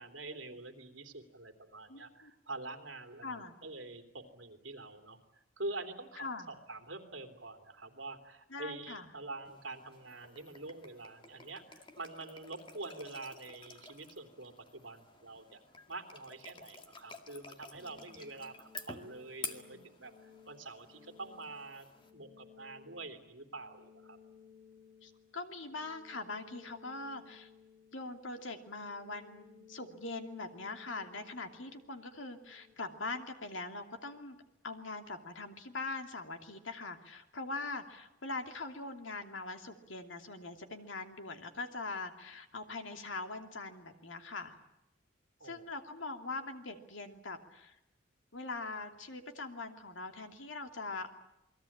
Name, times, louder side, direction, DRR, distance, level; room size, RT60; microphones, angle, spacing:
voice 1, 0.0-5.2 5.6-15.6 15.9-24.2 45.4-45.7, right 2 dB, 70° right, 7 dB, 3.2 m, -46 dB
voice 2, 1.9-2.3 3.2-3.5 6.2-6.5 8.5-9.1 19.7-19.9 25.0-27.5 27.9-34.4 34.6-44.6 45.4-47.8 48.3-51.1, left 3 dB, 75° left, 6 dB, 2.7 m, -42 dB
sound 1, 9.4-22.1, left 4 dB, 25° left, 2.1 m, -51 dB
sound 2, 17.7-32.7, left 7 dB, 20° right, 4.4 m, -60 dB
29.0 x 22.0 x 8.7 m, 0.88 s
head